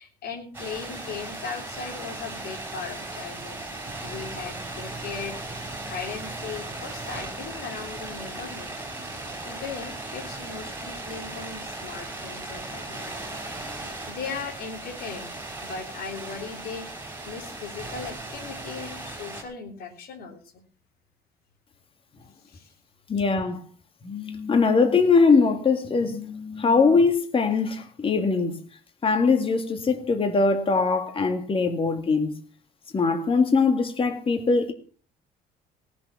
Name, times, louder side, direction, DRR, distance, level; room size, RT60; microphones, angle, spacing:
voice 1, 0.0-3.6 4.0-5.4 5.6-8.7 9.4-13.1 13.6-15.4 15.6-16.9 17.2-20.6 22.4-22.7, left 5 dB, 65° left, 3.4 m, -38 dB
sound 1, 0.5-19.4, right 2 dB, 15° right, 4.7 m, -37 dB
voice 2, 23.1-23.6 24.0-28.6 29.0-32.4 32.9-34.7, left 4 dB, 30° left, 2.0 m, -22 dB
18.0 x 7.0 x 6.9 m
cardioid pair, 110°, 17 cm